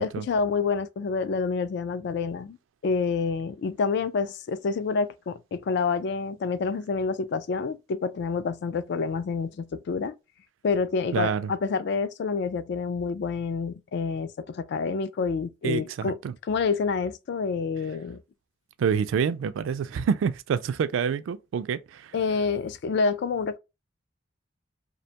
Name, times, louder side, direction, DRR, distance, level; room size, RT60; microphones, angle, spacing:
voice 1, 0.0-2.6 2.8-10.1 10.6-18.2 22.1-23.6, left 4 dB, 60° left, 0.3 m, -28 dB
voice 2, 11.1-11.5 15.6-16.3 18.8-22.1, right 6 dB, 80° right, 0.3 m, -27 dB
2.5 x 2.2 x 2.7 m
head